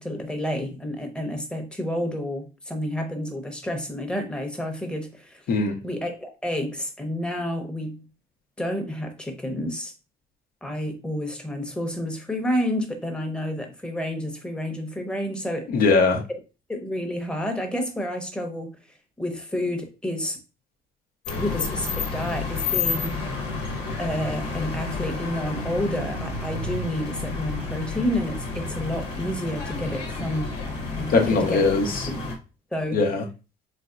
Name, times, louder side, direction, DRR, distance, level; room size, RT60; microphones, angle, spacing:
voice 1, 0.0-5.5 5.8-8.0 8.6-9.9 10.6-15.7 16.7-18.8 19.2-20.4 21.4-23.2 24.0-30.5 31.0-31.7 32.7-33.0, left 1 dB, 5° left, 0.9 m, -30 dB
voice 2, 5.5-5.8 15.7-16.2 31.1-32.1 32.9-33.2, left 4 dB, 60° left, 0.8 m, -20 dB
sound 1, 21.2-32.4, left 4 dB, 85° left, 1.2 m, -30 dB
4.2 x 3.1 x 2.4 m
cardioid pair, 110°, 17 cm